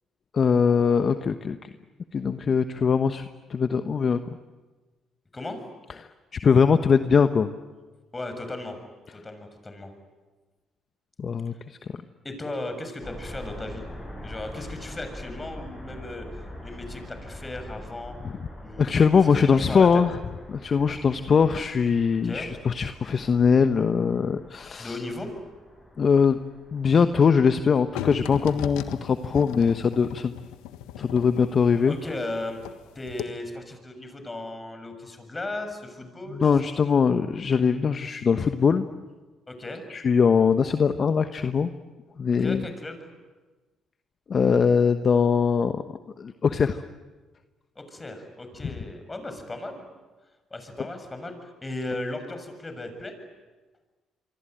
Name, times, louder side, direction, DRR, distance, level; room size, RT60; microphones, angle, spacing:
voice 1, 0.3-1.7 2.1-4.2 6.0-7.5 11.2-12.0 18.2-18.3 18.8-20.2 20.5-25.0 26.0-26.4 26.7-30.3 31.0-32.0 36.3-38.9 39.9-41.7 42.2-42.6 44.3-45.8 46.2-46.8, left 6 dB, 50° left, 9 dB, 1.1 m, -22 dB
voice 2, 8.1-8.8 9.1-9.9 12.2-13.9 14.2-16.3 16.6-18.1 18.6-18.9 19.5-19.9 22.2-22.5 24.8-25.3 31.9-32.6 32.9-36.5 39.5-39.8 42.4-43.1 47.7-49.9 50.5-53.1, left 2 dB, 25° left, 7 dB, 6.9 m, -36 dB
sound 1, 13.0-28.6, left 1 dB, 10° left, 7.4 m, -44 dB
sound 2, 27.9-32.8 33.1-33.2, left 11 dB, 85° left, 1.5 m, -37 dB
26.5 x 24.5 x 9.1 m, 1.3 s
supercardioid pair, 60°, 0 cm